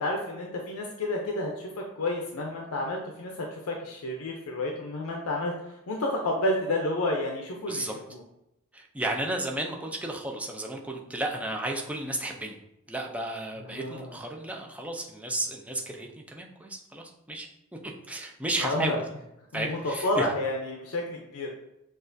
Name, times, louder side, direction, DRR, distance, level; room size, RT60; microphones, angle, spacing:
voice 1, 0.0-8.2 13.6-14.2 18.6-19.0 19.5-21.6, left 1 dB, 75° left, 1 dB, 0.5 m, -30 dB
voice 2, 8.7-12.6 12.9-17.5 17.8-19.0 19.5-20.3, right 1 dB, 5° right, 1 dB, 0.4 m, -33 dB
6.3 x 2.4 x 2.6 m, 0.84 s
head